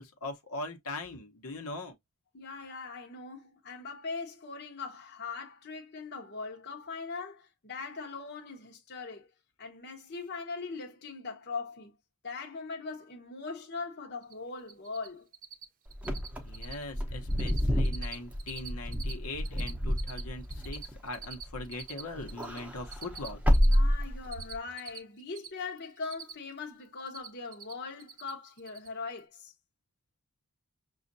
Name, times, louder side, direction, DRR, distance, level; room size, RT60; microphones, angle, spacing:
voice 1, 0.0-2.0 16.4-23.4, left 2 dB, 75° left, 1.0 m, -41 dB
voice 2, 2.3-9.3 9.6-11.9 12.2-15.3 23.6-29.5, left 4 dB, 50° left, 0.9 m, -40 dB
Cricket, 14.2-14.3 14.6-15.1 15.3-15.6 15.9-16.3 16.5-16.8 17.1-17.6 17.8-19.1 19.4-22.6 22.9-25.5 25.8-26.6 26.8-27.7 28.0-28.3 28.6-28.9, right 7 dB, 40° right, 0.6 m, -44 dB
Wind / Car, 16.0-21.8 22.1-24.6, equal, 5° right, 0.7 m, -29 dB
6.3 x 2.4 x 2.6 m
head